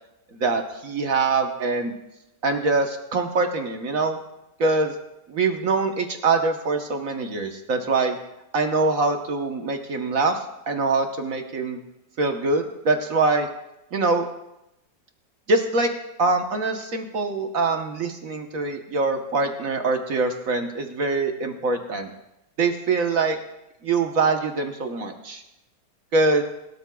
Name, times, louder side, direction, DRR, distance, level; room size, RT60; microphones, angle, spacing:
voice 1, 0.3-1.9 2.4-4.2 4.6-5.0 5.3-8.2 8.5-10.4 10.6-11.8 12.2-13.5 13.9-14.3 15.5-15.9 16.2-22.1 22.6-23.4 23.8-25.4 26.1-26.4, right 3 dB, 50° right, 4 dB, 1.3 m, -23 dB
23.0 x 13.0 x 2.3 m, 0.89 s
omnidirectional pair, 2.0 m